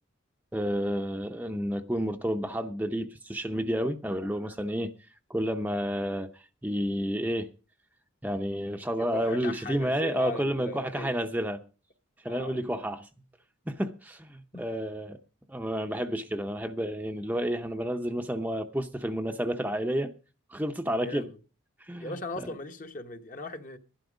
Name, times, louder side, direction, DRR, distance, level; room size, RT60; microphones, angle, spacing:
voice 1, 0.5-4.9 5.3-7.5 8.2-11.6 12.2-13.1 13.7-15.2 15.5-20.1 20.5-21.3 21.8-22.5, equal, 10° right, 0.6 m, -30 dB
voice 2, 9.0-11.2 12.3-12.6 14.5-14.7 20.9-21.4 21.9-23.8, left 2 dB, 40° left, 1.0 m, -39 dB
12.0 x 11.5 x 5.1 m
head